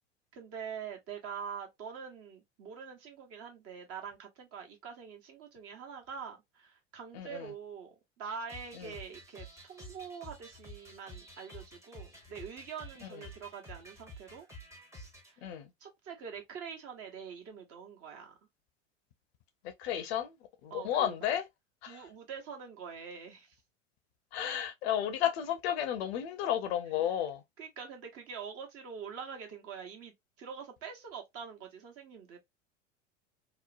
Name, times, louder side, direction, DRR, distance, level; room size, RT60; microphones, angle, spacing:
voice 1, 0.3-14.5 15.3-15.5 15.8-18.4 20.7-21.3 21.9-23.6 27.0-27.1 27.6-32.4, right 6 dB, 40° right, 1.1 m, -45 dB
voice 2, 7.1-7.5 8.8-8.9 13.1-13.2 15.4-15.7 19.8-20.3 20.6-21.4 21.8-22.0 24.3-27.4, left 10 dB, 60° left, 0.7 m, -32 dB
sound 1, 8.5-15.3, equal, 10° right, 0.9 m, -50 dB
3.0 x 2.0 x 2.4 m
hypercardioid pair, 85°, 37 cm